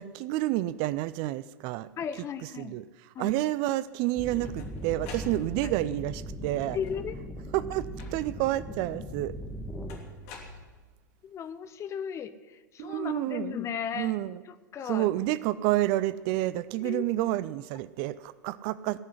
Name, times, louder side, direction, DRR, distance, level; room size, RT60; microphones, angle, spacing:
voice 1, 0.0-1.9 2.6-2.8 3.2-6.8 7.5-9.3 12.8-13.6 13.9-14.4 14.9-19.0, right 15 dB, 45° right, 18 dB, 0.5 m, -29 dB
voice 2, 2.0-2.8 3.1-3.3 3.7-3.8 5.6-5.7 6.7-7.2 11.2-14.2 14.4-15.1 16.8-17.1, left 8 dB, 30° left, 12 dB, 0.9 m, -36 dB
sound 1, 4.0-5.9 6.7-7.3 8.0-8.5 9.9-11.2, left 4 dB, 50° left, 2.9 m, -47 dB
sound 2, 4.2-10.0, equal, 10° left, 1.9 m, -39 dB
18.0 x 6.1 x 9.9 m, 1.3 s
figure-of-eight pair, 90°, 10 cm